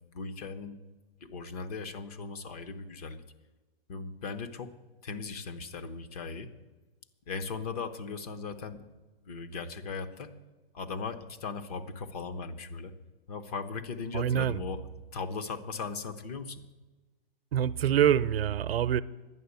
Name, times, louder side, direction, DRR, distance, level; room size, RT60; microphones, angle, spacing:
voice 1, 0.0-0.8 1.2-3.2 3.9-4.7 5.0-6.5 7.3-8.8 9.3-10.3 10.7-12.9 13.3-14.8 15.1-16.6, left 4 dB, 40° left, 1.0 m, -38 dB
voice 2, 14.1-14.6 17.5-19.0, right 10 dB, 80° right, 0.7 m, -25 dB
11.0 x 9.8 x 8.2 m
hypercardioid pair, 160°, 30 cm